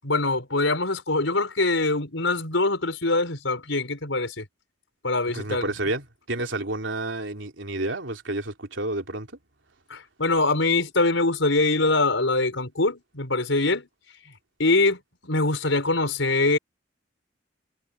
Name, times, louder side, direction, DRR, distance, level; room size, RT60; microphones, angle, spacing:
voice 1, 0.0-4.5 5.0-5.7 9.9-13.9 14.6-16.6, left 2 dB, 90° left, 5.6 m, -23 dB
voice 2, 5.3-9.3, right 2 dB, 80° right, 3.4 m, -30 dB
head